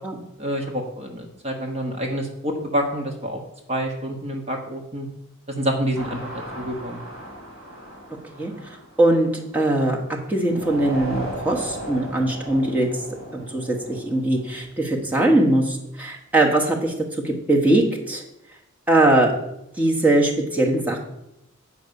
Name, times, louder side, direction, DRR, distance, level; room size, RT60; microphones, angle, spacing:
voice 1, 0.4-3.4 3.7-5.1 5.5-6.2 6.6-7.0, equal, 30° right, 1 dB, 1.1 m, -27 dB
sound 1, 5.9-9.9 10.5-14.6, right 1 dB, 75° right, 2.5 m, -36 dB
voice 2, 9.0-10.0 10.3-12.9 13.3-16.9 17.2-18.2 18.9-19.3 19.8-21.0, right 1 dB, 5° right, -1 dB, 1.2 m, -20 dB
8.5 x 5.2 x 6.9 m, 0.83 s
head